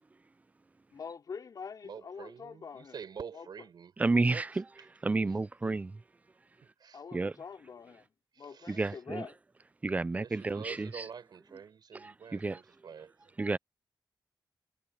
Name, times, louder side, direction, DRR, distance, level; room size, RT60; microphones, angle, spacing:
voice 1, 0.9-3.0 3.3-3.4 6.9-8.1 8.4-9.3, left 6 dB, 55° left, 3.1 m, -45 dB
voice 2, 1.8-3.9 4.3-4.4 6.8-7.0 8.3-9.0 10.2-13.1, right 7 dB, 65° right, 5.4 m, -46 dB
voice 3, 4.0-4.6 5.0-6.0 7.1-7.3 8.7-9.3 9.8-11.1 11.9-12.6 13.4-13.6, right 3 dB, 20° right, 0.4 m, -31 dB
wide cardioid pair, 120°, 8 cm